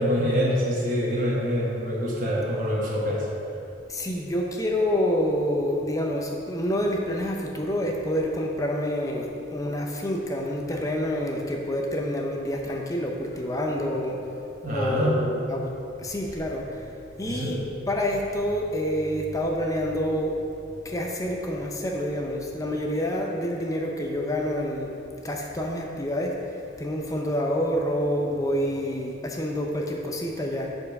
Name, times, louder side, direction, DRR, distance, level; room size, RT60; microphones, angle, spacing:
voice 1, 0.0-3.2 14.6-15.1 17.2-17.6, equal, 50° right, -4 dB, 1.2 m, -25 dB
voice 2, 3.9-14.2 14.7-15.7 16.0-16.8 17.2-20.3 20.8-24.9 25.2-26.4 26.8-30.7, equal, 20° left, 0 dB, 0.6 m, -27 dB
7.6 x 4.5 x 5.3 m, 2.7 s
head